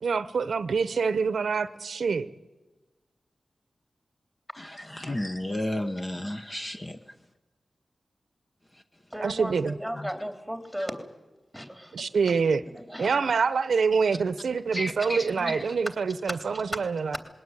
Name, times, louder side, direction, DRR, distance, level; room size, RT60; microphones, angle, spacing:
voice 1, 0.0-2.3 9.2-9.7 11.9-12.6 13.0-17.2, right 5 dB, 85° right, 14 dB, 0.8 m, -26 dB
voice 2, 5.0-7.0 14.7-15.6, left 1 dB, 25° left, 7 dB, 1.0 m, -32 dB
voice 3, 9.1-11.0 11.5-12.0 12.7-13.1 15.1-15.2 15.8-15.9 16.3-16.6, equal, 5° left, 6 dB, 3.2 m, -36 dB
20.5 x 17.5 x 9.7 m, 1.2 s
wide cardioid pair, 85°, 0 cm